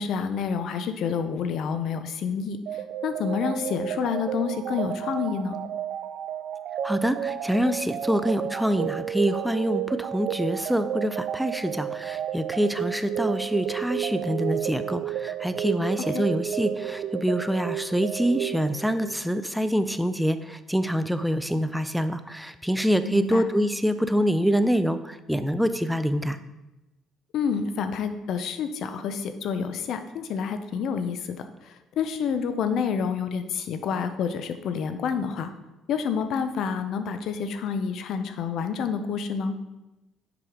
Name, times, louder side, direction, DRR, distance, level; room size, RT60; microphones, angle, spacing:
voice 1, 0.0-2.6 3.0-5.6 16.1-16.2 23.0-23.5 27.3-31.4 32.0-35.5 35.9-39.5, left 6 dB, 65° left, 9 dB, 0.6 m, -28 dB
sound 1, 2.7-19.3, right 9 dB, 65° right, 0.4 m, -32 dB
voice 2, 6.8-26.4, equal, ahead, 11 dB, 0.4 m, -25 dB
6.8 x 5.0 x 3.7 m, 1.0 s
supercardioid pair, 85°, 0 cm